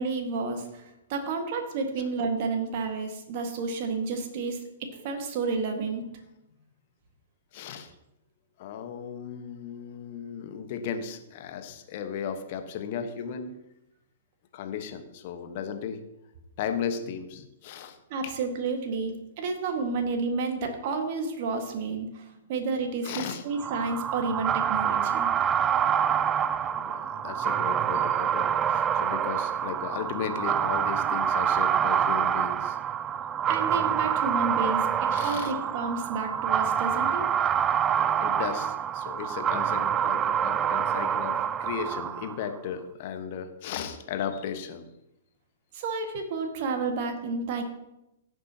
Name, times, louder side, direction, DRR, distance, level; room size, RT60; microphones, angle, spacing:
voice 1, 0.0-6.0 18.1-25.3 33.5-37.3 45.7-47.6, right 4 dB, 45° right, 4 dB, 1.8 m, -31 dB
voice 2, 7.5-7.9 8.6-13.5 14.5-16.0 16.6-18.0 18.2-18.3 23.0-23.4 26.7-32.8 35.1-35.5 38.0-44.9, left 7 dB, 45° left, 7 dB, 1.3 m, -35 dB
sound 1, 23.6-42.5, right 8 dB, 20° right, 0.3 m, -26 dB
16.5 x 7.7 x 2.9 m, 0.89 s
figure-of-eight pair, 110°, 0 cm